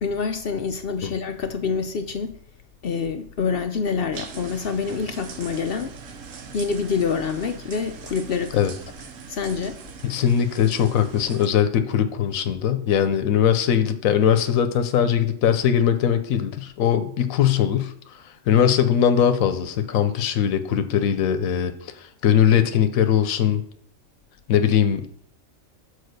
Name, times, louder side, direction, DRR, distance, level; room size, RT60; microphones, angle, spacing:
voice 1, 0.0-2.3 2.8-5.9 6.5-8.6 9.3-9.8, left 5 dB, 60° left, 0.6 m, -26 dB
sound 1, 4.1-11.5, right 6 dB, 75° right, 1.2 m, -41 dB
voice 2, 10.0-17.9 18.5-23.6 24.5-25.1, left 9 dB, 90° left, 1.1 m, -20 dB
6.7 x 4.3 x 6.5 m
omnidirectional pair, 1.4 m